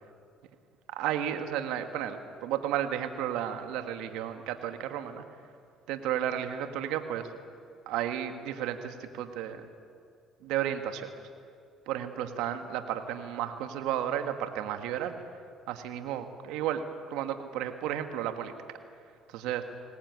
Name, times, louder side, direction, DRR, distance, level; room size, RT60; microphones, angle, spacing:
voice 1, 0.9-5.2 5.9-7.3 7.8-9.7 10.4-11.1 11.9-15.1 15.7-16.8 17.1-18.5 19.3-19.6, right 10 dB, 80° right, 7 dB, 1.6 m, -33 dB
20.5 x 19.0 x 9.4 m, 2.3 s
supercardioid pair, 75°, 0 cm